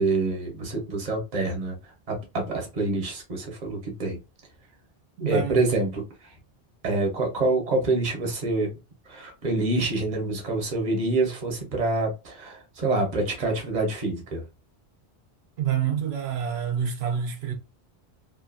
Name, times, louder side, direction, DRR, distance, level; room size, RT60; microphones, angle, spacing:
voice 1, 0.0-1.8 2.1-4.2 5.3-6.3 6.8-8.7 9.1-14.4, right 2 dB, 40° right, 1.0 m, -26 dB
voice 2, 5.2-5.6 15.6-17.5, right 8 dB, 75° right, 0.9 m, -27 dB
2.7 x 2.5 x 2.5 m
omnidirectional pair, 1.1 m